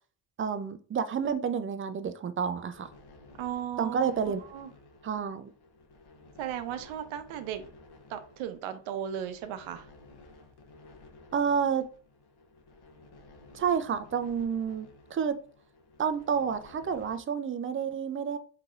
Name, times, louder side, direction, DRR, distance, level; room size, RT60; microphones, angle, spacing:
voice 1, 0.4-2.9 3.8-4.4 5.0-5.5 11.3-11.9 13.5-15.4 16.0-18.4, right 7 dB, 25° right, 11 dB, 0.4 m, -29 dB
sound 1, 2.7-17.2, left 2 dB, 50° left, 0.9 m, -54 dB
voice 2, 3.4-4.7 6.4-7.6 8.1-9.9, right 9 dB, 75° right, 10 dB, 0.7 m, -36 dB
3.8 x 2.8 x 2.4 m, 0.42 s
supercardioid pair, 50°, 49 cm